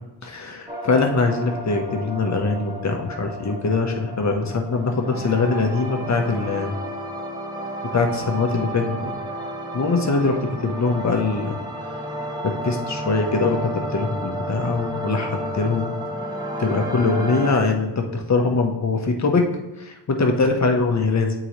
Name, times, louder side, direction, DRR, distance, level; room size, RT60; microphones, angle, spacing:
voice 1, 0.2-6.7 7.9-9.1 9.7-11.6 12.6-16.0 16.6-19.5 19.8-21.3, left 3 dB, 40° left, 3 dB, 1.0 m, -22 dB
sound 1, 0.7-17.5, equal, 10° right, 0.9 m, -32 dB
8.0 x 3.8 x 3.0 m, 1.0 s
cardioid pair, 70°, 42 cm